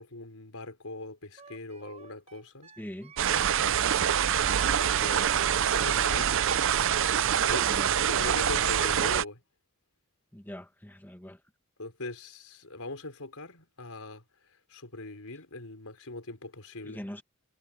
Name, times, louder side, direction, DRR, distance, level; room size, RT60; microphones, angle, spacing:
voice 1, 0.0-2.7 4.5-6.6 7.0-9.4 11.8-17.0, left 2 dB, 75° left, 4.6 m, -41 dB
Wind instrument woodwind instrument, 1.4-7.0, right 6 dB, 30° right, 4.9 m, -52 dB
voice 2, 2.8-3.1 7.6-7.9 10.3-11.4 16.8-17.2, equal, 10° left, 1.4 m, -42 dB
sound 1, 3.2-9.2, right 9 dB, 60° right, 0.5 m, -25 dB
head